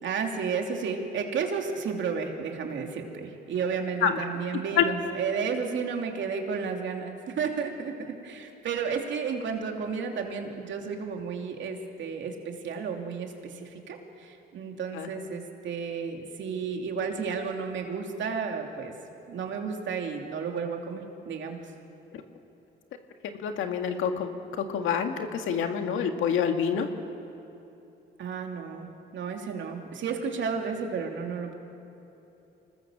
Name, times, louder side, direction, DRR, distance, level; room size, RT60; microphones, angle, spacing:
voice 1, 0.0-18.9 19.3-21.6 28.2-31.5, right 5 dB, 70° right, 3 dB, 2.9 m, -32 dB
voice 2, 23.4-24.3 24.6-26.9, left 8 dB, 85° left, 5 dB, 1.9 m, -27 dB
26.0 x 20.0 x 7.4 m, 2.9 s
cardioid pair, 90°, 20 cm